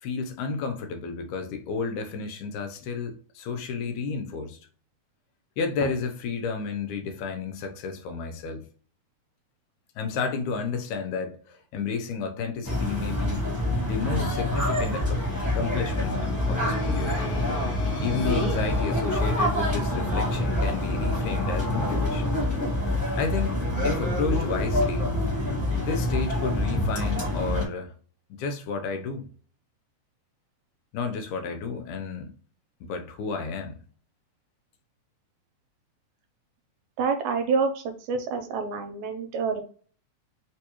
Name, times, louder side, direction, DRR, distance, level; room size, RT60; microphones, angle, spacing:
voice 1, 0.0-4.6 5.6-8.6 10.0-13.4 13.9-15.2 15.5-17.1 18.0-22.3 23.2-23.6 23.8-25.1 25.8-27.9 28.3-29.3 30.9-32.3 32.8-33.8, left 5 dB, 80° left, 2.1 m, -31 dB
sound 1, 12.6-27.7, left 1 dB, 15° left, 0.7 m, -26 dB
sound 2, 13.9-24.1, left 2 dB, 55° left, 1.0 m, -39 dB
voice 2, 37.0-39.6, right 5 dB, 80° right, 1.9 m, -27 dB
4.8 x 2.3 x 2.9 m
omnidirectional pair, 3.4 m